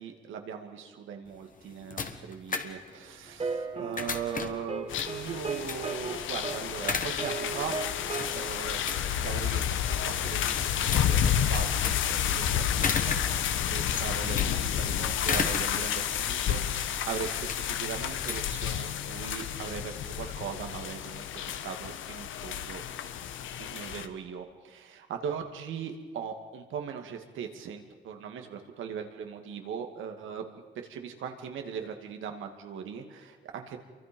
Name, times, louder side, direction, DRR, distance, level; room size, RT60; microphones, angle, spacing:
voice 1, 0.0-7.8 8.3-8.8 9.2-13.2 13.7-16.0 16.3-22.8 23.6-30.5 30.8-33.8, right 7 dB, 80° right, 5 dB, 2.4 m, -39 dB
sound 1, 1.3-19.2, left 5 dB, 40° left, 1.6 m, -37 dB
sound 2, 3.4-8.3, right 4 dB, 30° right, 1.9 m, -36 dB
sound 3, 4.9-24.1, left 9 dB, 80° left, 1.2 m, -30 dB
28.5 x 24.0 x 5.4 m, 1.5 s
cardioid pair, 90°, 20 cm